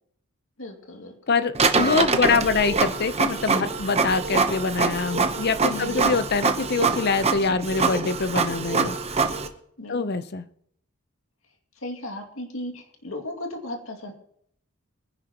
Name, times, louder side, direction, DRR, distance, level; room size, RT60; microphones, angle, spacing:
voice 1, 0.6-1.1 1.8-2.5 5.6-6.1 9.8-10.1 11.8-14.1, left 1 dB, 70° left, 3 dB, 2.3 m, -36 dB
voice 2, 1.3-9.0 9.9-10.4, left 4 dB, 50° left, 12 dB, 0.7 m, -24 dB
Printer, 1.5-9.5, right 4 dB, 30° right, 0.9 m, -24 dB
24.0 x 10.5 x 3.0 m, 0.69 s
head